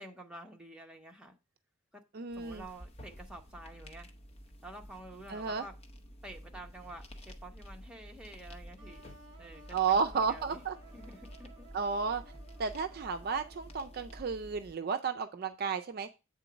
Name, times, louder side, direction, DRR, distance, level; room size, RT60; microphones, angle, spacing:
voice 1, 0.0-1.4 1.9-2.0 2.3-4.1 4.6-5.7 6.2-9.0 9.4-10.6 10.9-11.7, right 1 dB, 5° right, 0.8 m, -49 dB
voice 2, 2.1-2.6 5.3-5.6 9.7-10.7 11.7-12.2 12.6-16.1, right 5 dB, 45° right, 0.4 m, -32 dB
sound 1, 2.3-14.8, equal, 30° left, 0.8 m, -51 dB
sound 2, 8.8-14.6, right 3 dB, 25° right, 2.0 m, -57 dB
8.1 x 3.8 x 5.0 m
head